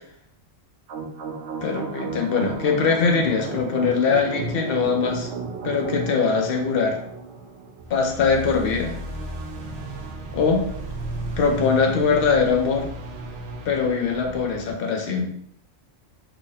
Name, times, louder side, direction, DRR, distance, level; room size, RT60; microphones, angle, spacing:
sound 1, 0.9-14.6, right 3 dB, 65° right, 0.9 m, -34 dB
voice 1, 1.6-5.3 5.6-7.0 7.9-8.9 10.3-10.7 11.4-12.9 13.7-15.3, left 5 dB, 55° left, 2 dB, 0.8 m, -22 dB
2.9 x 2.6 x 4.0 m, 0.67 s
omnidirectional pair, 1.3 m